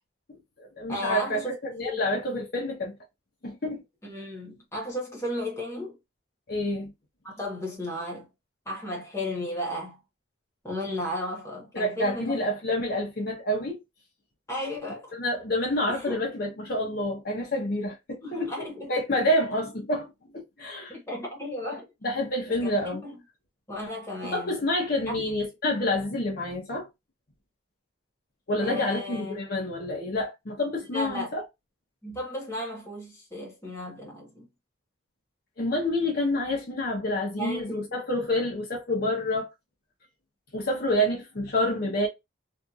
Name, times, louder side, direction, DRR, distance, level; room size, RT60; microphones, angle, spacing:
voice 1, 0.3-3.0 3.4-3.8 6.5-6.9 11.7-13.8 15.2-18.5 18.9-20.9 22.0-23.0 24.2-26.9 28.5-31.4 35.6-39.5 40.5-42.1, left 1 dB, 50° left, 0.8 m, -28 dB
voice 2, 0.9-1.5 1.8-2.0 4.0-6.0 7.2-8.3 8.7-10.0 10.6-12.4 14.5-15.1 16.0-16.2 18.2-18.9 20.9-21.8 22.5-23.1 23.7-24.6 25.1-25.2 28.6-29.4 30.9-31.3 32.0-34.5 37.4-38.0, left 1 dB, 15° left, 1.0 m, -34 dB
2.7 x 2.5 x 2.3 m
head